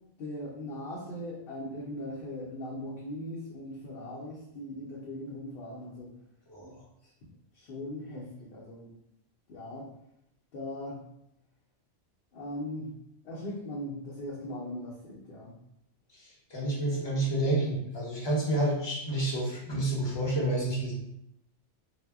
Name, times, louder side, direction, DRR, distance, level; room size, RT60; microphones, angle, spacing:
voice 1, 0.2-6.1 6.6-7.1 7.5-8.9 9.5-9.9 10.5-11.1 12.3-15.6, left 1 dB, 60° left, -6 dB, 0.7 m, -39 dB
voice 2, 16.1-20.9, right 1 dB, 25° left, -5 dB, 0.7 m, -29 dB
2.1 x 2.0 x 3.4 m, 0.81 s
omnidirectional pair, 1.3 m